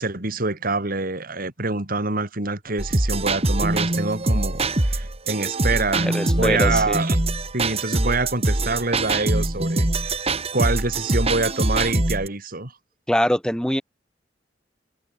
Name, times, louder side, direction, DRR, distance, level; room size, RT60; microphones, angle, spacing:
voice 1, 0.0-7.2 7.5-10.2 10.5-12.7, right 3 dB, 50° right, 3.8 m, -26 dB
sound 1, 2.8-12.3, right 2 dB, 35° right, 1.9 m, -23 dB
voice 2, 6.0-7.0 13.1-13.8, equal, 5° left, 2.3 m, -23 dB
head